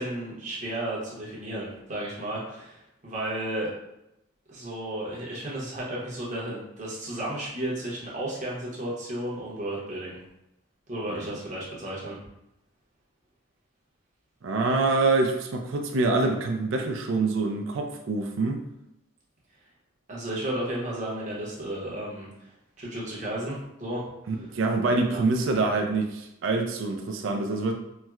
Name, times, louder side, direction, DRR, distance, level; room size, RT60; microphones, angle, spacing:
voice 1, 0.0-3.7 4.5-10.2 10.9-12.2 20.1-22.3 22.8-24.0 25.1-25.2, right 1 dB, 35° right, -5 dB, 0.9 m, -33 dB
voice 2, 14.4-18.6 24.3-27.7, right 3 dB, 60° right, 3 dB, 0.4 m, -25 dB
4.3 x 2.1 x 2.3 m, 0.86 s
head